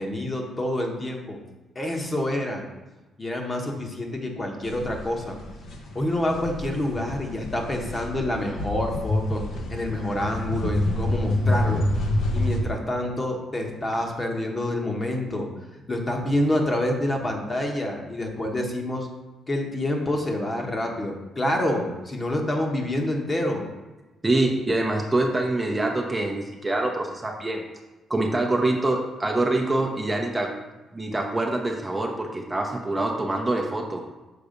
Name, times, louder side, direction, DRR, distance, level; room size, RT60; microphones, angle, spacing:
voice 1, 0.0-1.4 1.7-2.7 3.2-5.4 5.9-9.4 9.7-11.8 12.3-15.5 15.9-19.1 19.5-23.7, left 1 dB, 25° left, 1 dB, 1.2 m, -27 dB
sound 1, 4.6-12.6, left 1 dB, 70° left, 1.0 m, -28 dB
voice 2, 24.2-27.6 28.1-30.5 30.9-34.0, right 2 dB, 15° right, 1 dB, 0.8 m, -25 dB
6.8 x 3.4 x 5.1 m, 1.1 s
cardioid pair, 90°, 0 cm